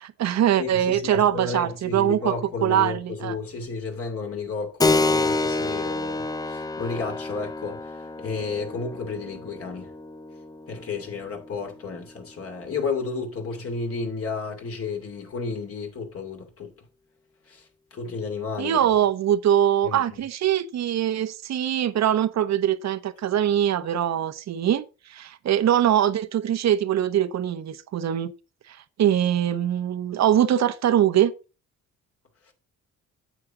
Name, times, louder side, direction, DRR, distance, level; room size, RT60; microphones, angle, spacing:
voice 1, 0.0-2.3 2.6-3.3 18.6-24.8 25.1-28.3 28.7-31.3, right 10 dB, 60° right, 0.9 m, -22 dB
voice 2, 0.6-9.9 10.7-16.7 17.5-18.9 19.8-20.0 32.5-32.6, left 4 dB, 50° left, 2.6 m, -32 dB
Keyboard (musical), 4.8-13.0, left 3 dB, 15° left, 0.5 m, -29 dB
9.2 x 7.7 x 3.7 m
cardioid pair, 90°, 30 cm